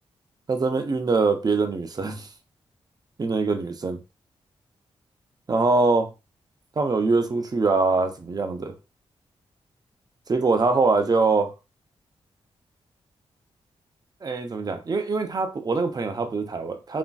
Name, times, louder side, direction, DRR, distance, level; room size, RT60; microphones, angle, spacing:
voice 1, 0.5-2.3 3.2-4.0 5.5-6.1 6.8-8.7 10.3-11.5 14.2-17.0, right 3 dB, 40° right, 0.6 m, -23 dB
3.0 x 2.5 x 2.3 m
cardioid pair, 55°, 11 cm